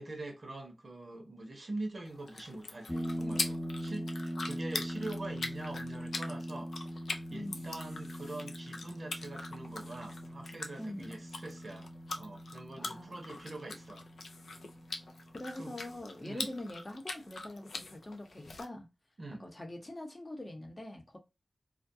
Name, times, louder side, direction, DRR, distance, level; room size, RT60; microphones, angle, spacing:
voice 1, 0.0-6.7 7.3-14.1 15.6-15.7 16.2-16.5 19.2-19.5, right 2 dB, 60° right, 0.7 m, -44 dB
sound 1, 2.1-18.7, left 3 dB, 90° left, 0.3 m, -43 dB
sound 2, 2.9-16.0, equal, 15° left, 0.3 m, -42 dB
voice 2, 7.3-7.8 10.8-11.2 12.8-13.2 15.3-18.9 19.3-21.2, left 1 dB, 35° left, 0.8 m, -44 dB
2.3 x 2.2 x 2.6 m
cardioid pair, 45°, 0 cm